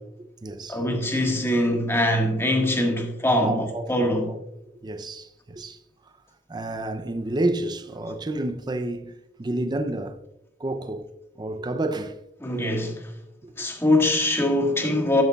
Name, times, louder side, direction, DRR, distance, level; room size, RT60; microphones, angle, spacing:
voice 1, 0.2-0.8 3.4-4.4 4.8-5.8 6.5-9.1 9.4-10.2 10.6-11.1 11.4-12.2 13.4-13.7, right 2 dB, 25° right, 0.5 m, -30 dB
voice 2, 0.7-4.3 12.4-13.0 13.6-15.2, left 1 dB, 15° left, 1.5 m, -23 dB
12.5 x 7.8 x 2.3 m
head